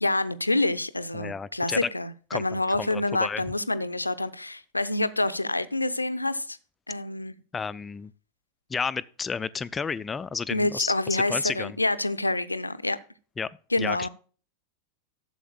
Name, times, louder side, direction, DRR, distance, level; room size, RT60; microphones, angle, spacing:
voice 1, 0.0-6.6 6.9-7.3 10.5-13.0 13.7-14.1, left 2 dB, 85° left, 0.5 m, -27 dB
voice 2, 1.1-1.9 2.3-3.4 7.5-8.1 8.7-11.8 13.4-14.1, left 5 dB, 15° left, 0.3 m, -32 dB
13.0 x 7.7 x 2.2 m
figure-of-eight pair, 90°, 0 cm